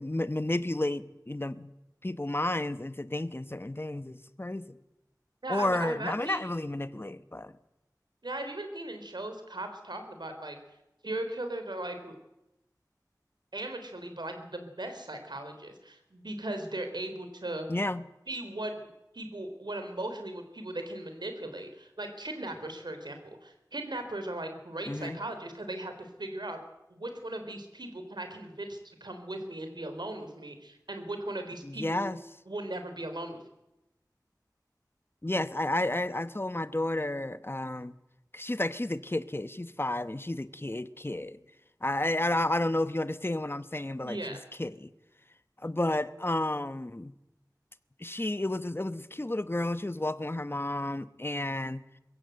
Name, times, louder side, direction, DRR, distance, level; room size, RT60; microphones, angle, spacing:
voice 1, 0.0-1.7 2.0-4.8 5.5-7.5 17.7-18.0 24.9-25.2 31.6-32.2 35.2-37.9 38.3-41.4 41.8-44.9 45.6-47.1 48.0-51.8, left 1 dB, 30° left, 13 dB, 1.0 m, -31 dB
voice 2, 5.4-6.5 8.2-10.6 11.0-12.2 13.5-17.7 18.3-18.7 19.1-26.6 26.9-32.1 32.5-33.4 44.0-44.4, right 1 dB, 80° right, 6 dB, 3.4 m, -38 dB
22.0 x 16.0 x 7.9 m, 0.93 s
wide cardioid pair, 45°, 7 cm